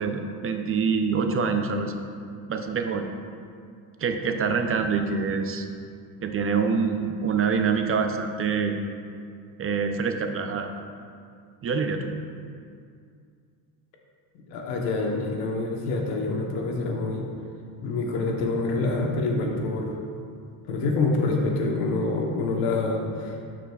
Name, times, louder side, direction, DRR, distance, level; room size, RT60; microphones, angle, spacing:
voice 1, 0.0-1.9 2.5-3.0 4.0-5.6 6.2-8.7 9.6-10.7 11.6-12.1, right 5 dB, 35° right, 6 dB, 0.5 m, -25 dB
voice 2, 14.5-17.2 17.8-19.9 20.7-23.5, left 3 dB, 90° left, 1 dB, 1.1 m, -26 dB
12.0 x 4.9 x 2.3 m, 2.3 s
cardioid pair, 105°, 40 cm